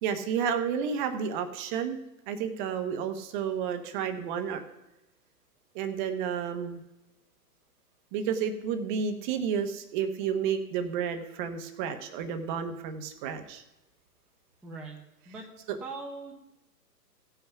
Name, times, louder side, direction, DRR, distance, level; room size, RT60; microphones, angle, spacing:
voice 1, 0.0-2.0 2.3-4.6 5.7-6.8 8.1-13.6 15.7-15.8, right 7 dB, 30° right, 8 dB, 0.9 m, -31 dB
voice 2, 14.6-15.0 15.3-15.4 15.8-16.3, right 3 dB, ahead, -3 dB, 0.7 m, -40 dB
16.0 x 5.8 x 5.7 m, 0.97 s
hypercardioid pair, 135°, 49 cm